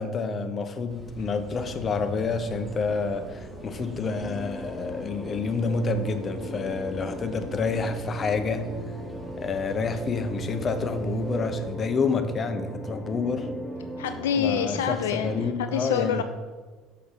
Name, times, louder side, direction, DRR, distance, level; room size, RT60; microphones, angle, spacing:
voice 1, 0.0-8.8 9.4-13.5 14.4-16.2, left 4 dB, 40° left, 8 dB, 0.9 m, -28 dB
sound 1, 0.9-11.8, equal, 5° left, 1.6 m, -47 dB
sound 2, 1.6-14.8, left 1 dB, 40° right, 2.6 m, -47 dB
sound 3, 4.0-15.5, equal, 10° right, 1.5 m, -38 dB
voice 2, 14.0-16.2, left 8 dB, 75° left, 8 dB, 0.3 m, -27 dB
6.6 x 5.7 x 5.8 m, 1.4 s
figure-of-eight pair, 60°, 0 cm